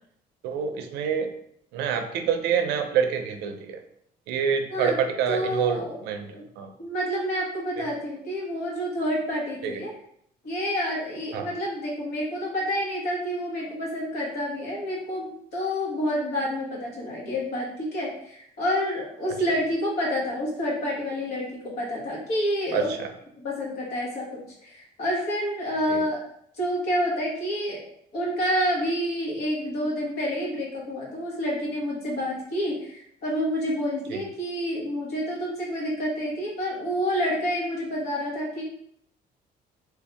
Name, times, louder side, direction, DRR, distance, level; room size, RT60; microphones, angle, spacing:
voice 1, 0.4-1.3 1.7-3.8 4.3-6.3 6.6-6.7 7.8-7.9 9.6-9.8 11.3-11.5 22.7-23.1 25.9-26.0 34.1-34.2, right 7 dB, 90° right, 6 dB, 0.5 m, -27 dB
voice 2, 5.3-6.0 6.3-6.4 6.8-9.9 10.4-22.9 23.4-26.2 26.6-27.8 28.1-38.6, equal, 70° left, -4 dB, 1.4 m, -28 dB
3.3 x 2.7 x 3.3 m, 0.69 s
cardioid pair, 110°, 17 cm